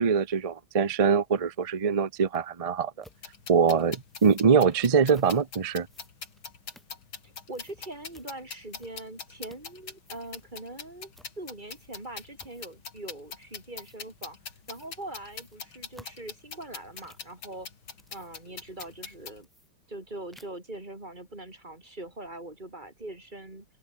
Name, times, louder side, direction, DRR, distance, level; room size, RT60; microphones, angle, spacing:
voice 1, 0.0-2.9 3.5-5.9, right 6 dB, 60° right, 0.3 m, -23 dB
sound 1, 2.3-2.4 3.0-3.2 4.1-4.4 5.1-5.4 5.9-7.2 7.5-7.8 8.1-8.3 8.7-9.1 9.4-9.7 10.0-10.5 11.1-11.3 11.7-12.0 12.4-12.8 13.8-14.0 14.6-14.9 15.2-17.3 17.8-18.5 18.8-18.9 19.4-20.0 20.3-20.7, equal, ahead, 6.4 m, -56 dB
sound 2, 3.1-19.4, left 6 dB, 75° left, 3.5 m, -44 dB
voice 2, 7.2-14.4 14.7-17.7 18.1-19.5 19.9-23.7, right 1 dB, 20° right, 4.3 m, -42 dB
open air
omnidirectional pair, 2.2 m